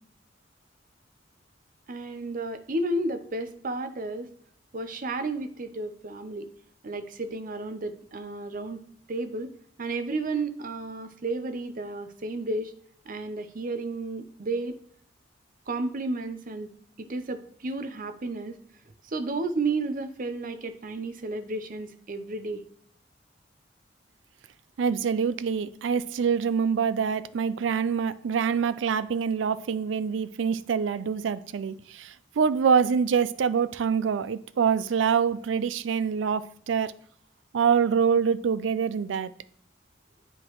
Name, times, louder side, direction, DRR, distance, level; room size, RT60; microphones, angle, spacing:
voice 1, 1.9-4.3 4.7-6.5 6.8-8.8 9.1-9.5 9.8-12.7 13.1-14.8 15.7-16.7 17.0-18.6 19.0-22.6, right 2 dB, 50° right, 0.6 m, -32 dB
voice 2, 24.8-36.9 37.5-39.3, right 6 dB, 85° right, 0.4 m, -25 dB
10.0 x 3.8 x 3.1 m
head